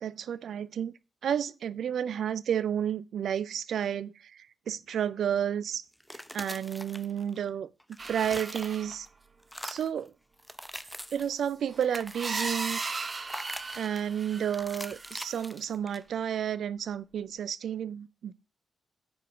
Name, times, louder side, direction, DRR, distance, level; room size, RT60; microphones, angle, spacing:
voice 1, 0.0-0.9 1.2-5.8 6.3-7.7 8.1-9.1 9.6-10.1 11.1-12.8 13.8-18.3, right 9 dB, 70° right, 0.4 m, -31 dB
sound 1, 5.9-7.5 7.8-9.1 9.4-10.0 10.4-11.3 11.7-12.5 13.3-14.1 14.5-16.2, equal, ahead, 0.7 m, -43 dB
sound 2, 8.0-9.0 10.8-10.9 11.5-15.4, right 4 dB, 40° right, 0.8 m, -37 dB
7.8 x 4.8 x 5.2 m
hypercardioid pair, 45°, 0 cm